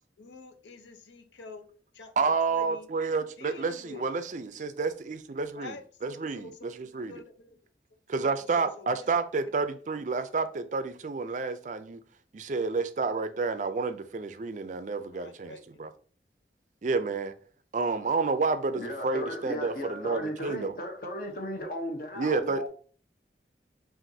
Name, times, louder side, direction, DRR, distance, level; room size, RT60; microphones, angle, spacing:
voice 1, 0.2-2.2 2.5-2.9 3.4-4.1 5.5-6.7 7.1-7.6 8.4-9.1 9.9-10.0 15.1-15.8, left 3 dB, 90° left, 0.6 m, -47 dB
voice 2, 2.2-5.7 6.0-6.5 6.8-7.1 8.1-12.0 12.3-15.9 16.8-17.3 17.7-20.7 22.2-22.7, right 4 dB, 45° right, 0.4 m, -30 dB
voice 3, 18.7-22.7, left 1 dB, 55° left, 0.9 m, -36 dB
5.8 x 2.5 x 2.7 m
head